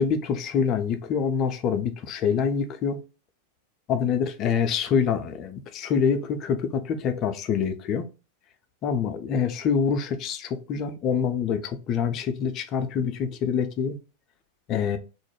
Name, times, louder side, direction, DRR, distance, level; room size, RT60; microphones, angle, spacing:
voice 1, 0.0-3.0 3.9-8.0 8.8-14.0 14.7-15.0, left 6 dB, 35° left, 0.4 m, -26 dB
2.4 x 2.0 x 3.1 m
figure-of-eight pair, 90°, 0 cm